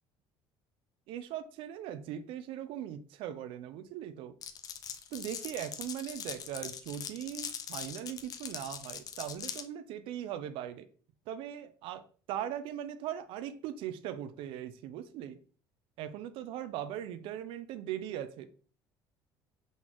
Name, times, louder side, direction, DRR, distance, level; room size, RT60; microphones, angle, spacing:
voice 1, 1.1-4.3 5.1-10.9 11.3-12.0 12.3-15.4 16.0-18.5, right 10 dB, 70° right, 0.4 m, -39 dB
Glass, 4.4-9.7, left 8 dB, 40° left, 0.5 m, -41 dB
4.0 x 3.9 x 3.0 m
cardioid pair, 125°, 9 cm